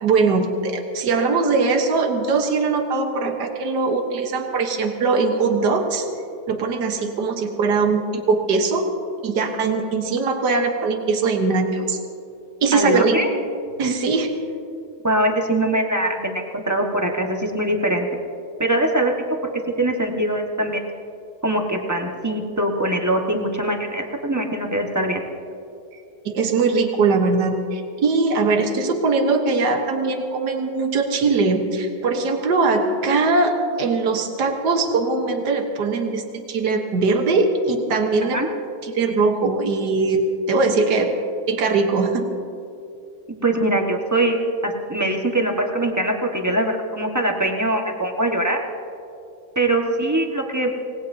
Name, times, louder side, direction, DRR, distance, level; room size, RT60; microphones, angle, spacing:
voice 1, 0.0-6.1 6.5-8.9 9.2-12.0 12.6-13.2 13.8-14.3 26.3-38.4 38.8-41.1 41.5-42.3, right 4 dB, 80° right, 4 dB, 1.8 m, -21 dB
voice 2, 12.7-13.3 15.0-18.1 18.6-19.2 19.8-20.8 21.4-25.2 38.2-38.5 43.4-44.4 44.6-48.6 49.5-50.7, right 1 dB, 10° right, 1 dB, 1.3 m, -22 dB
26.0 x 19.0 x 2.8 m, 2.6 s
omnidirectional pair, 1.8 m